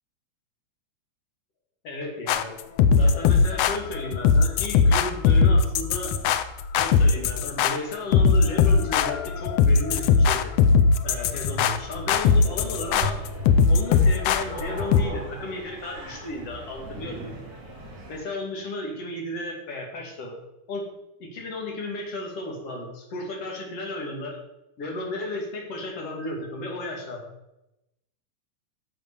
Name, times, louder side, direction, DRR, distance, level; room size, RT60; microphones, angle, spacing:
voice 1, 1.8-2.6 3.0-6.1 6.8-10.5 11.0-13.2 13.7-17.3 18.1-20.4 20.7-20.9 21.2-24.4 24.8-27.2, left 1 dB, 55° left, 0 dB, 3.4 m, -34 dB
sound 1, 2.3-15.0, left 5 dB, 75° left, 1.5 m, -20 dB
sound 2, 6.2-8.1 8.5-10.9 11.4-14.2, left 1 dB, 65° right, 2.4 m, -39 dB
sound 3, 12.2-18.2, right 1 dB, 80° right, 5.0 m, -41 dB
11.0 x 7.4 x 6.9 m, 0.90 s
omnidirectional pair, 3.5 m